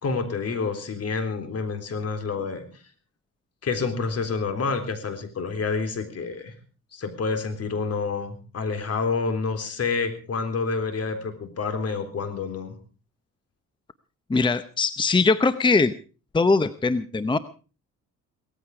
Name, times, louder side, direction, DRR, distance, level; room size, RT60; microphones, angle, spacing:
voice 1, 0.0-2.7 3.6-6.5 6.9-12.8, left 4 dB, 55° left, 8 dB, 3.8 m, -28 dB
voice 2, 14.3-15.9 16.3-17.4, left 3 dB, 15° left, 13 dB, 0.8 m, -21 dB
18.0 x 15.0 x 4.8 m, 0.38 s
cardioid pair, 90°, 30 cm